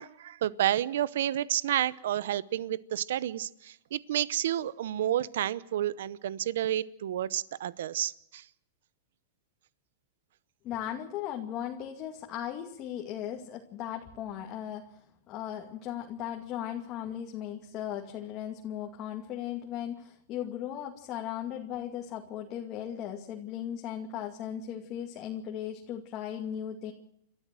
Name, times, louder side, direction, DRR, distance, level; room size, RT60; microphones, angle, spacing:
voice 1, 0.0-8.4, right 12 dB, 80° right, 19 dB, 0.8 m, -30 dB
voice 2, 10.6-26.9, left 10 dB, 35° left, 1 dB, 2.4 m, -37 dB
29.5 x 13.5 x 7.7 m, 0.78 s
supercardioid pair, 150°, 0 cm